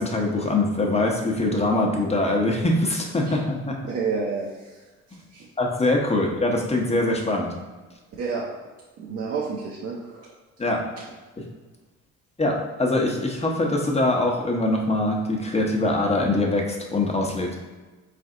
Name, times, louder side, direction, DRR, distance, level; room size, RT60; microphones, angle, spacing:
voice 1, 0.0-3.7 5.6-7.5 10.6-10.8 12.4-17.5, left 2 dB, 20° left, 0 dB, 0.9 m, -23 dB
voice 2, 3.9-4.8 5.3-5.5 8.2-8.4 9.0-10.3, right 5 dB, 50° right, -4 dB, 0.8 m, -29 dB
3.9 x 3.4 x 3.8 m, 1.2 s
cardioid pair, 90°, 30 cm